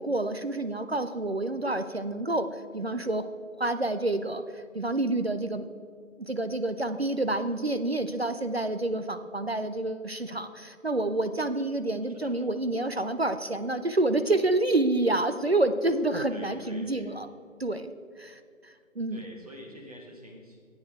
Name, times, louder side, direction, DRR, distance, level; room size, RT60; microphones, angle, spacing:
voice 1, 0.0-3.3 3.6-5.7 6.2-17.3 17.6-17.9 18.2-19.2, right 2 dB, 50° right, 10 dB, 0.5 m, -28 dB
voice 2, 12.1-12.6 16.3-17.1 19.1-20.6, equal, 25° right, -1 dB, 1.6 m, -46 dB
14.0 x 8.8 x 3.6 m, 2.2 s
figure-of-eight pair, 160°, 41 cm